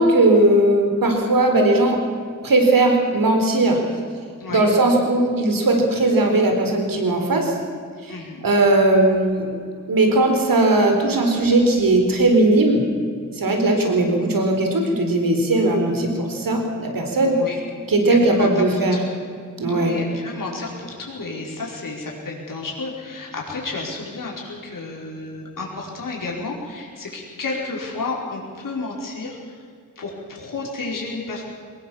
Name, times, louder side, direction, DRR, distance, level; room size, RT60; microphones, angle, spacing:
voice 1, 0.0-2.0 2.4-3.8 4.5-7.5 8.0-8.1 8.4-9.5 9.9-12.8 13.4-17.4 17.9-19.0 19.6-20.0, right 2 dB, 80° right, 3 dB, 4.1 m, -18 dB
voice 2, 8.1-8.4 17.3-17.6 18.1-19.1 19.7-29.4 30.0-31.4, left 3 dB, 70° left, -2 dB, 4.9 m, -31 dB
23.0 x 19.5 x 7.3 m, 2.2 s
wide cardioid pair, 130°, 33 cm